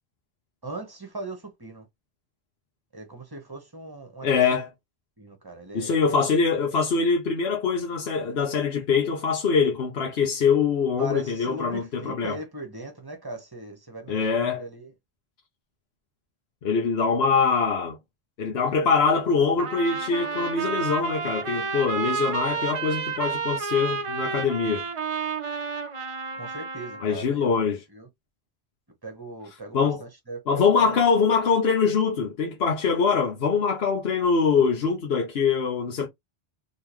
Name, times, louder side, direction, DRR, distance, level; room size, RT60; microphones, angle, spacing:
voice 1, 0.6-1.9 2.9-4.3 5.2-5.9 11.0-14.9 26.3-27.5 27.9-28.1 29.0-31.0, right 2 dB, 20° right, 1.2 m, -39 dB
voice 2, 4.2-4.7 5.7-12.4 14.1-14.6 16.6-18.0 18.4-24.8 27.0-27.8 29.7-30.0 30.5-36.1, left 5 dB, 75° left, 1.0 m, -23 dB
Trumpet, 19.6-27.0, right 5 dB, 40° right, 0.5 m, -30 dB
3.6 x 3.0 x 3.0 m
omnidirectional pair, 1.0 m